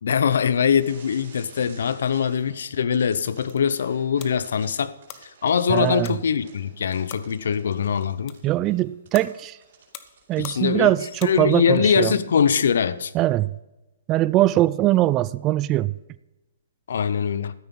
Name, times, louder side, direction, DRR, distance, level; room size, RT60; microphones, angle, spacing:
voice 1, 0.0-4.9 5.4-8.3 10.4-10.9 11.2-13.1 16.9-17.5, left 7 dB, 70° left, 0.7 m, -22 dB
sound 1, 0.8-2.7 2.9-12.0 12.4-12.6 13.3-13.4, right 5 dB, 55° right, 4.4 m, -52 dB
sound 2, 3.2-11.8, left 12 dB, 35° left, 0.9 m, -46 dB
voice 2, 5.7-6.2 8.4-9.6 10.3-12.2 13.1-13.6 14.1-15.9, right 15 dB, 25° right, 0.3 m, -21 dB
13.0 x 9.3 x 5.4 m
hypercardioid pair, 145°, 0 cm